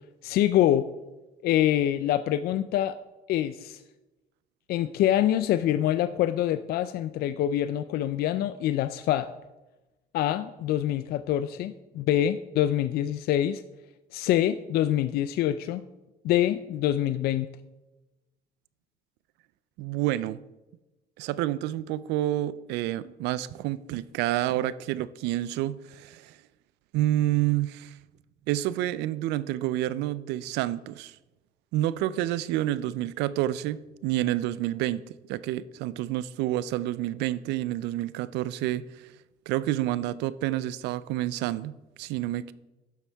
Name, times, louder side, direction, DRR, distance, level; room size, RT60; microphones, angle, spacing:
voice 1, 0.2-0.8 1.4-2.9 3.3-3.8 4.7-9.3 10.1-13.6 14.1-15.8 16.2-17.5, left 12 dB, 65° left, 0.4 m, -25 dB
voice 2, 19.8-20.4 21.2-26.3 26.9-27.9 28.5-31.1 31.7-38.8 39.5-42.5, right 14 dB, 90° right, 0.4 m, -29 dB
12.0 x 7.2 x 3.4 m
cardioid pair, 110°, 17 cm